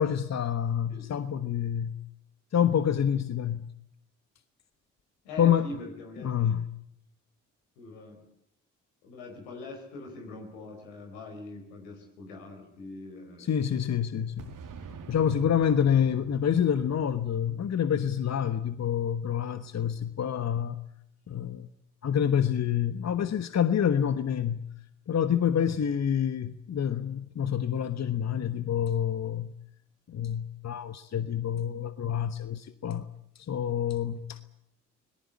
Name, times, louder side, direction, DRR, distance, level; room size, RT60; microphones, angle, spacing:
voice 1, 0.0-1.9 2.5-3.7 5.4-5.7 6.2-6.6 13.5-14.5 15.1-20.8 21.3-21.7 22.0-24.6 25.1-29.5 30.1-33.1 33.5-34.4, left 8 dB, 50° left, 1.3 m, -27 dB
voice 2, 5.2-6.5 7.8-8.2 9.0-13.6 15.3-15.4 25.6-25.8, left 2 dB, 90° left, 4.8 m, -43 dB
Boom, 14.4-19.1, right 6 dB, 65° right, 2.7 m, -47 dB
25.5 x 18.5 x 8.5 m
hypercardioid pair, 45°, 34 cm